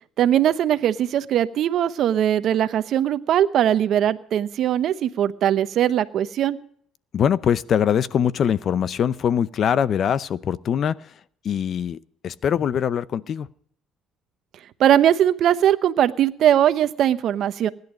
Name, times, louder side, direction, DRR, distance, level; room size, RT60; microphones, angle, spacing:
voice 1, 0.2-6.6 14.8-17.7, right 10 dB, 60° right, 12 dB, 0.9 m, -20 dB
voice 2, 7.1-11.1 11.4-13.5, left 8 dB, 50° left, 18 dB, 0.6 m, -23 dB
19.5 x 11.0 x 5.2 m, 0.63 s
cardioid pair, 105°, 0 cm